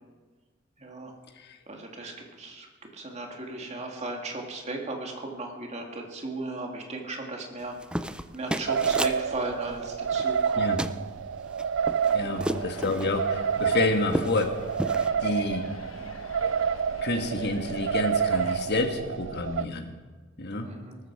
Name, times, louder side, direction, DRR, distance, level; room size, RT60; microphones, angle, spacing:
voice 1, 0.8-1.1 1.7-2.7 2.9-7.8 8.3-10.8 12.2-12.6 13.0-13.1 20.6-21.0, right 2 dB, 35° right, 1 dB, 2.4 m, -36 dB
sound 1, 7.6-9.2 10.1-10.5 10.8-11.0 11.5-13.1 13.6-13.7 14.0-14.5 14.8-15.1, right 1 dB, 5° right, 0.5 m, -32 dB
sound 2, 8.7-19.6, right 7 dB, 65° right, 0.4 m, -29 dB
sound 3, 12.1-18.6, left 2 dB, 80° left, 1.4 m, -46 dB
voice 2, 12.1-14.6 15.2-15.7 17.0-19.9 20.4-20.7, left 2 dB, 55° left, 6 dB, 1.5 m, -28 dB
19.0 x 14.0 x 4.8 m, 1.4 s
head